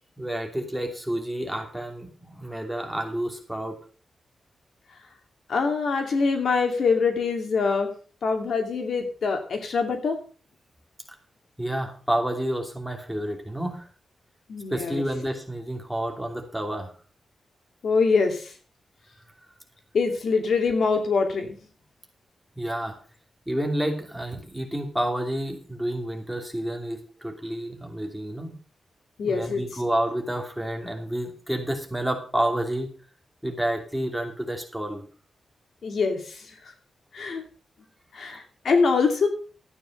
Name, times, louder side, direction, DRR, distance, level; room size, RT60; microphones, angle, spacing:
voice 1, 0.2-3.7 11.6-13.9 14.7-16.9 19.4-19.5 22.6-22.9 23.5-28.5 29.2-32.9 33.4-35.0, right 1 dB, 5° right, 2 dB, 2.8 m, -29 dB
voice 2, 5.5-7.9 8.2-10.2 14.5-15.0 17.8-18.4 19.9-21.6 29.2-29.6 35.8-36.2 37.1-37.4 38.2-39.3, left 4 dB, 65° left, 5 dB, 2.6 m, -24 dB
13.0 x 9.3 x 5.4 m, 0.39 s
wide cardioid pair, 125°, 0 cm